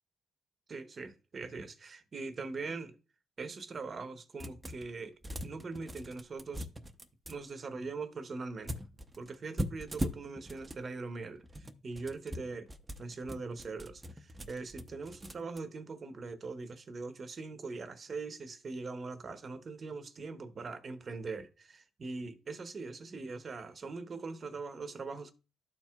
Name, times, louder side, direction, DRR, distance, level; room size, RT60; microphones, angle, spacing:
voice 1, 0.7-2.9 3.4-6.7 7.3-8.7 9.2-12.7 13.0-25.3, right 4 dB, 45° right, 1.0 m, -42 dB
sound 1, 4.4-4.9 5.2-7.4 8.7-10.8 11.4-15.6, equal, 20° right, 0.8 m, -40 dB
12.5 x 4.5 x 2.3 m
cardioid pair, 75°, 0 cm